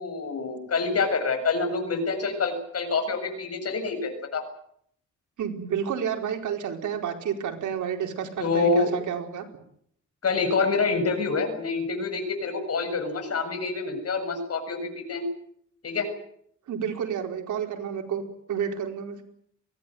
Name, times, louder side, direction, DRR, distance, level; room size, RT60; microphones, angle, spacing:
voice 1, 0.0-4.4 8.4-8.9 10.2-15.2 15.8-16.1, left 4 dB, 55° left, 5 dB, 7.7 m, -27 dB
voice 2, 5.4-9.4 16.7-18.2 18.5-19.2, right 8 dB, 80° right, 3 dB, 4.6 m, -30 dB
23.5 x 18.0 x 9.4 m, 0.68 s
cardioid pair, 90°, 29 cm